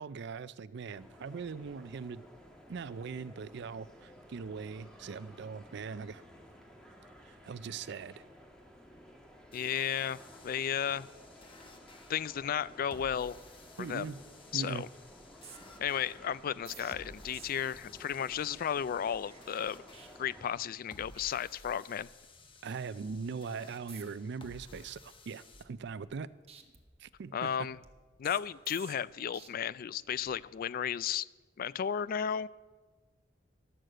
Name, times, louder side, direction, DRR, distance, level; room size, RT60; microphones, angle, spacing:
voice 1, 0.0-2.3 2.7-6.2 7.2-8.2 13.8-14.2 14.5-14.8 22.6-26.3 27.0-27.7, right 5 dB, 65° right, 16 dB, 0.4 m, -41 dB
sound 1, 0.9-20.5, equal, 5° left, 1.4 m, -55 dB
voice 2, 9.5-10.2 10.4-11.1 12.1-13.4 13.8-14.1 14.5-14.9 15.8-19.8 20.2-22.1 27.3-27.8 28.2-31.3 31.6-32.5, left 8 dB, 50° left, 19 dB, 0.3 m, -34 dB
sound 2, 9.5-25.6, left 2 dB, 30° left, 0.9 m, -56 dB
sound 3, 15.0-20.8 21.1-21.3 21.6-22.5 22.9-23.2 23.7-24.3 24.7-26.2 26.5-29.5 30.0-30.4, right 6 dB, 35° right, 1.1 m, -56 dB
12.5 x 6.4 x 7.6 m, 1.3 s
head